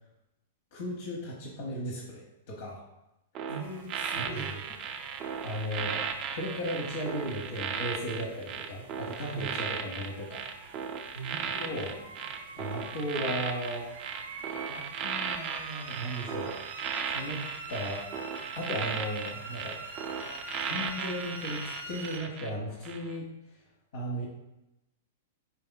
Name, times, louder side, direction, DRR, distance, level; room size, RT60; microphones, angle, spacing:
voice 1, 0.7-2.2 2.5-2.8 3.4-3.5 4.2-4.5 5.4-6.0 6.4-10.4 11.6-11.9 12.6-13.9 14.6-16.5 17.0-18.1 18.5-19.8 20.6-23.3 23.9-24.3, equal, 65° left, -5 dB, 1.0 m, -36 dB
sound 1, 3.3-22.5 22.8-23.1, right 7 dB, 35° right, 0.4 m, -36 dB
voice 2, 3.5-4.8 9.3-9.6 11.1-12.3, right 3 dB, 80° left, 0 dB, 1.4 m, -41 dB
sound 2, 3.6-22.2, right 3 dB, 80° right, 0.6 m, -46 dB
4.7 x 4.1 x 2.2 m, 0.95 s
hypercardioid pair, 120°, 0 cm